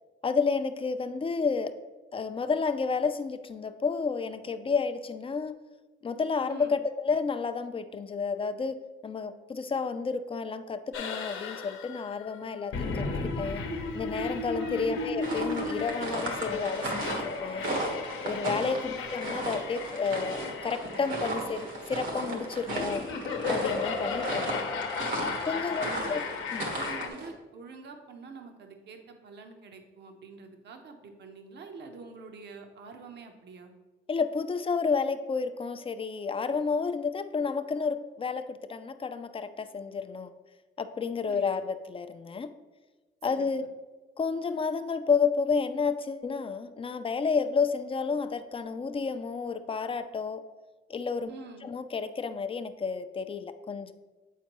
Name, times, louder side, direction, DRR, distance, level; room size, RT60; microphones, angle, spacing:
voice 1, 0.2-1.8 2.1-5.5 6.0-13.0 13.4-13.6 13.9-17.7 18.2-23.1 23.5-24.5 25.4-25.8 26.1-26.2 26.5-26.6 34.1-40.3 40.8-42.5 43.2-43.6 44.2-50.4 50.9-51.3 51.6-53.9, left 5 dB, 25° left, 10 dB, 0.4 m, -31 dB
voice 2, 6.5-6.8 14.6-14.9 18.5-18.8 24.2-24.5 25.7-26.2 26.7-33.7 41.3-41.6 43.3-43.5 51.3-51.7, right 4 dB, 60° right, 5 dB, 0.8 m, -46 dB
sound 1, 10.9-27.1, left 4 dB, 75° left, 0.8 m, -35 dB
sound 2, 15.2-27.3, right 1 dB, 75° right, 1.4 m, -35 dB
8.2 x 4.4 x 3.0 m, 1.2 s
cardioid pair, 90°, 20 cm